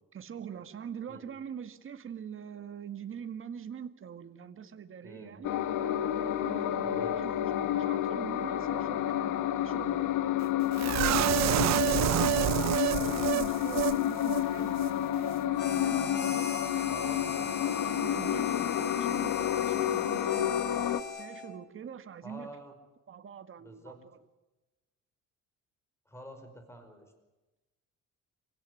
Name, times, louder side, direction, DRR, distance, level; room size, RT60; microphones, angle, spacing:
voice 1, 0.1-5.6 6.4-10.2 10.7-14.8 15.4-17.4 17.7-20.8 21.1-22.6 23.1-24.0, right 8 dB, 40° right, 9 dB, 1.9 m, -44 dB
voice 2, 5.0-5.4 6.8-7.2 16.9-17.5 22.2-22.7 23.6-24.0 26.1-27.1, equal, 10° left, 7 dB, 5.3 m, -47 dB
sound 1, 5.4-21.0, left 11 dB, 80° left, 1.4 m, -30 dB
sound 2, 10.8-14.0 14.2-14.4 14.8-14.9, right 13 dB, 60° right, 0.8 m, -28 dB
Harmonica, 15.6-21.6, left 6 dB, 35° left, 3.2 m, -39 dB
27.5 x 16.5 x 9.9 m, 1.1 s
cardioid pair, 120°, 31 cm